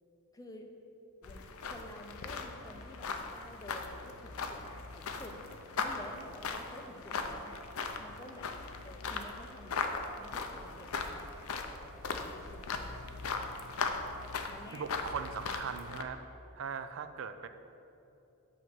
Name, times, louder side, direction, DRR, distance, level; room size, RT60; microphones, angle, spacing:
voice 1, 0.3-0.7 1.2-4.6 4.9-5.4 5.8-7.6 8.0-8.5 8.8-9.8 10.1-13.5 14.4-14.9, left 1 dB, 15° left, 3 dB, 0.5 m, -51 dB
sound 1, 1.2-16.0, left 4 dB, 75° left, 0.5 m, -39 dB
voice 2, 14.7-16.2 16.6-17.5, right 6 dB, 60° right, 9 dB, 0.3 m, -39 dB
8.4 x 3.1 x 5.9 m, 2.9 s
head